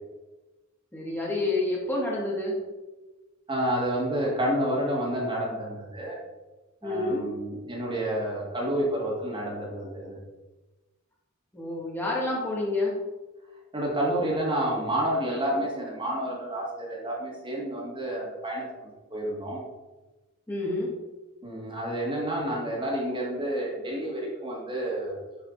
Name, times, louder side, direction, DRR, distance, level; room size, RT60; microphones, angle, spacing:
voice 1, 0.9-2.5 6.8-7.3 11.5-12.9 20.5-20.9, left 2 dB, 10° left, -4 dB, 2.4 m, -28 dB
voice 2, 3.5-6.2 6.8-10.2 13.7-19.6 21.4-25.2, right 1 dB, 25° right, -3 dB, 2.1 m, -29 dB
11.0 x 5.1 x 4.1 m, 1.1 s
head